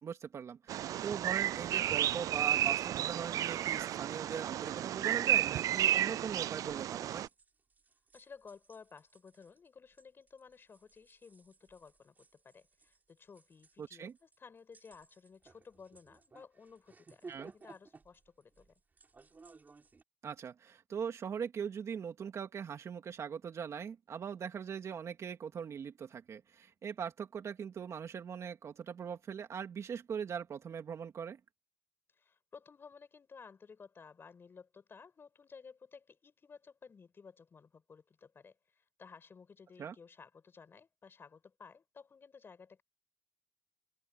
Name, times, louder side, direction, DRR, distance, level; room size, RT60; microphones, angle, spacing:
voice 1, 0.0-7.3 13.8-14.1 17.3-17.5 20.2-31.4 39.8-39.9, right 7 dB, 50° right, 2.8 m, -41 dB
Bird vocalization bird call bird song, 0.7-7.3, right 12 dB, 65° right, 0.4 m, -32 dB
sound 1, 6.3-20.0, right 4 dB, 30° right, 6.7 m, -59 dB
voice 2, 8.1-18.7 32.2-42.8, left 5 dB, 35° left, 7.2 m, -55 dB
cardioid pair, 105°, 6 cm